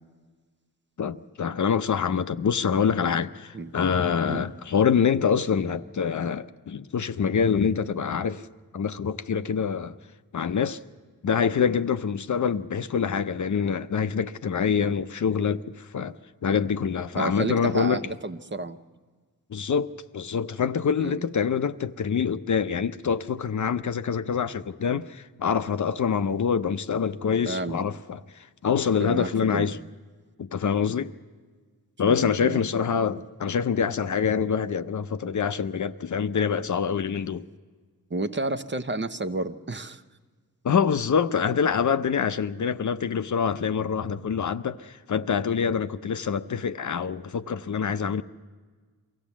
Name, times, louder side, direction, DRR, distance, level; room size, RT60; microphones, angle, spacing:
voice 1, 1.0-8.5 8.7-10.0 10.3-10.8 11.2-16.2 16.4-18.1 19.5-29.8 30.4-31.1 32.0-37.5 40.6-48.2, left 6 dB, 55° left, 0.6 m, -25 dB
voice 2, 17.1-18.8 21.0-21.2 27.4-27.8 29.0-29.7 32.1-32.6 38.1-40.0, right 2 dB, 30° right, 0.8 m, -31 dB
23.5 x 15.5 x 7.2 m
wide cardioid pair, 85°, 36 cm